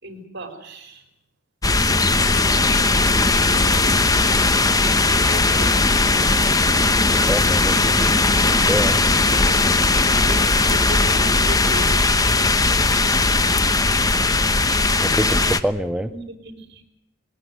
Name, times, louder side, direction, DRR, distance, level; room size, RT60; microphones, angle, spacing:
voice 1, 0.0-1.0 2.2-3.3 5.1-5.8 7.5-7.9 9.4-11.9 16.1-16.8, right 2 dB, 60° right, 7 dB, 4.5 m, -37 dB
sound 1, 1.6-15.6, left 3 dB, 20° left, 1.0 m, -18 dB
voice 2, 7.3-7.7 8.5-9.0 15.0-16.1, equal, 5° right, 8 dB, 0.8 m, -25 dB
21.0 x 18.0 x 9.5 m, 0.82 s
head